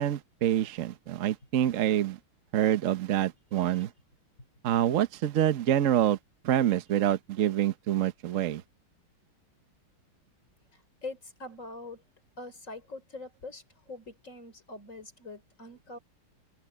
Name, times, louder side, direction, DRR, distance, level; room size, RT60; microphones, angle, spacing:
voice 1, 0.0-2.2 2.5-3.9 4.6-6.2 6.4-8.6, right 11 dB, 55° right, 0.9 m, -26 dB
voice 2, 10.7-12.0 12.4-13.6 13.9-16.0, left 2 dB, 35° left, 4.1 m, -43 dB
open air
omnidirectional pair, 2.3 m